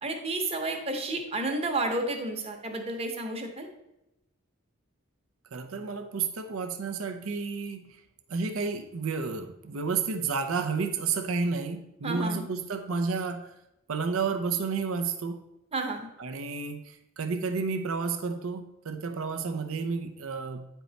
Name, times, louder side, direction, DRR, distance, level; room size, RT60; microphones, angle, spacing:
voice 1, 0.0-3.7 12.0-12.4 15.7-16.1, right 2 dB, 30° right, 4 dB, 1.0 m, -31 dB
voice 2, 5.5-8.0 8.3-13.5 13.9-15.4 16.2-20.7, right 4 dB, 80° right, 6 dB, 0.6 m, -31 dB
9.4 x 4.6 x 4.0 m, 0.91 s
head